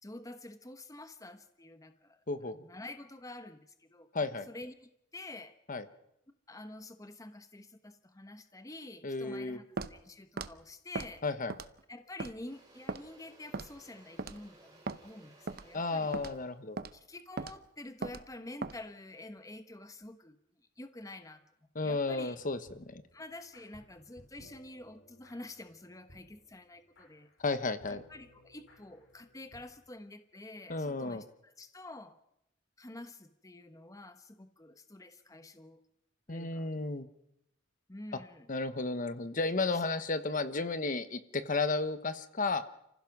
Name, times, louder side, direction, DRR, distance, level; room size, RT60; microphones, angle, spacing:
voice 1, 0.0-4.1 4.5-5.6 6.5-11.2 11.9-16.2 16.9-20.4 20.8-21.4 21.8-22.4 23.1-27.3 27.9-32.2 32.8-35.8 36.3-36.7 37.9-38.5 39.6-39.8, left 2 dB, 15° left, 9 dB, 1.0 m, -48 dB
voice 2, 4.1-4.5 5.7-5.8 9.0-9.6 11.2-11.5 15.7-16.8 21.7-23.0 27.4-28.0 30.7-31.2 36.3-37.1 38.5-42.6, left 3 dB, 45° left, 12 dB, 1.1 m, -33 dB
Walk footsteps, 9.8-10.0 10.4-10.5 11.0-11.1 11.5-11.8 12.2-12.3 12.9-13.0 13.5-13.8 14.2-14.4 14.9-15.0 15.5-15.7 16.1-16.4 16.8-16.9 17.4-17.6 18.0-18.2 18.6-18.8, right 3 dB, 50° right, 0.8 m, -38 dB
Engine / Drill, 12.0-18.2, right 2 dB, 20° right, 5.7 m, -60 dB
sound 1, 22.3-29.7, equal, 65° left, 5.7 m, -61 dB
30.0 x 15.5 x 6.1 m, 0.82 s
head